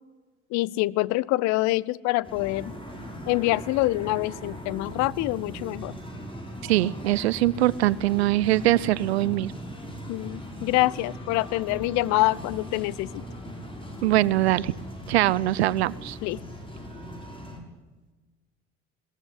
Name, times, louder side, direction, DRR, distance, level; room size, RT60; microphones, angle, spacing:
voice 1, 0.5-2.7 3.3-5.9 10.1-13.2 16.2-16.4, left 19 dB, 60° left, 23 dB, 0.7 m, -25 dB
sound 1, 2.2-17.6, equal, 15° left, 6.3 m, -39 dB
voice 2, 6.6-9.5 14.0-14.7 15.1-16.2, right 15 dB, 75° right, 22 dB, 0.7 m, -22 dB
22.0 x 17.0 x 10.0 m, 1.2 s
figure-of-eight pair, 50°, 32 cm